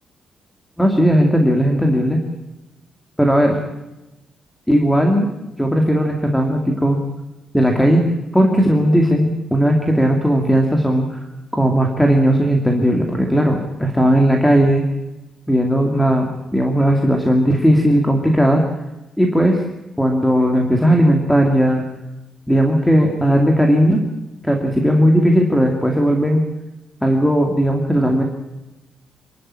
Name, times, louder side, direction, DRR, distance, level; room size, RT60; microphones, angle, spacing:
voice 1, 0.8-2.2 3.2-3.6 4.7-5.3 5.6-7.0 7.5-8.0 8.3-11.2 11.5-14.8 15.5-18.6 19.2-19.6 20.0-21.8 22.5-24.0 24.4-26.4 27.0-28.2, equal, ahead, 2 dB, 2.5 m, -16 dB
28.0 x 12.0 x 9.9 m, 1.0 s
wide cardioid pair, 170°, 0 cm